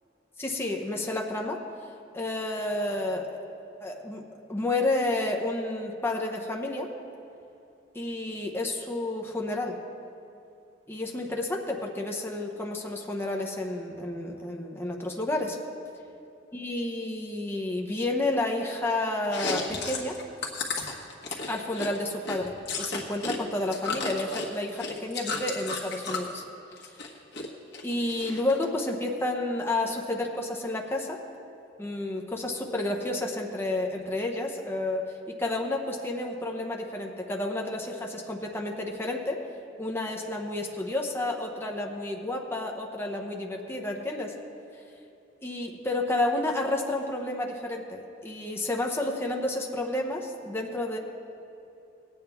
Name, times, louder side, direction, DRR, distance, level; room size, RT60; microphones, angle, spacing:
voice 1, 0.4-1.6 2.1-3.4 3.8-4.2 4.5-6.9 7.9-9.8 10.9-15.6 16.5-20.2 21.5-26.4 27.8-31.2 31.8-39.4 39.8-44.3 45.4-51.0, left 2 dB, 15° left, 1 dB, 0.8 m, -30 dB
Chewing mastication, 19.2-23.4 23.6-26.3 26.7-27.5 27.7-28.6, left 4 dB, 65° left, 1.4 m, -33 dB
18.5 x 8.8 x 3.5 m, 2.8 s
head